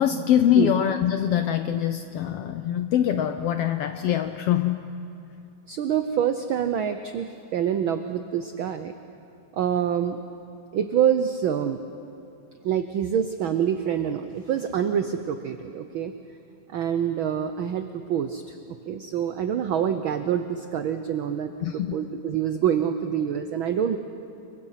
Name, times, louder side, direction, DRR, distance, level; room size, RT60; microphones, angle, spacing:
voice 1, 0.0-4.9 21.6-22.0, left 10 dB, 75° left, 9 dB, 1.4 m, -23 dB
voice 2, 5.7-8.9 9.5-10.2 10.7-11.8 12.6-16.1 16.7-18.5 18.9-24.0, right 9 dB, 85° right, 9 dB, 1.1 m, -26 dB
28.0 x 23.5 x 5.8 m, 2.7 s
omnidirectional pair, 3.3 m